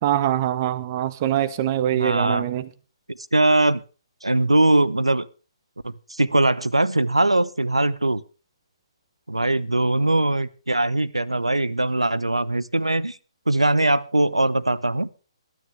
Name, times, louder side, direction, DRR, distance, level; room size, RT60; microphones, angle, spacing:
voice 1, 0.0-2.7, right 12 dB, 35° right, 0.8 m, -23 dB
voice 2, 1.9-2.4 3.1-3.8 4.2-5.3 5.8-8.2 9.3-13.2 13.5-15.1, right 2 dB, 90° right, 0.7 m, -21 dB
22.0 x 9.5 x 3.3 m
figure-of-eight pair, 135°, 3 cm